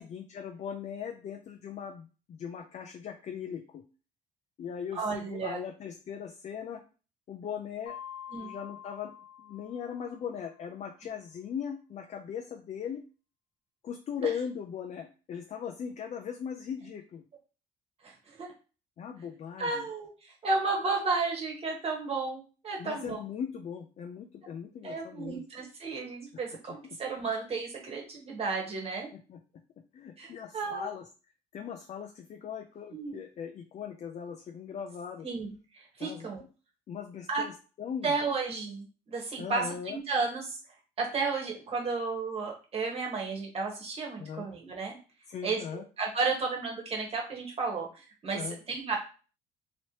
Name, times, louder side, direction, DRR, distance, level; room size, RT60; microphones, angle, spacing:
voice 1, 0.0-3.8 4.6-6.8 7.3-8.0 8.4-13.0 13.8-17.2 19.0-19.9 22.8-25.4 29.1-29.4 29.9-31.1 31.5-35.3 36.0-36.3 36.9-37.5 37.8-38.1 39.4-40.0 44.2-44.5 45.3-45.8 48.3-48.6, left 7 dB, 45° left, 4 dB, 0.4 m, -39 dB
voice 2, 4.9-5.6 8.3-8.5 18.0-18.5 19.6-23.2 24.8-29.1 30.2-30.9 32.9-33.2 35.2-36.4 37.3-37.4 38.0-40.6 41.0-45.0 45.4-49.0, right 4 dB, 35° right, 0 dB, 1.3 m, -33 dB
Mallet percussion, 7.9-10.5, left 9 dB, 85° left, 1.2 m, -46 dB
3.1 x 3.0 x 2.9 m, 0.35 s
cardioid pair, 110°, 17 cm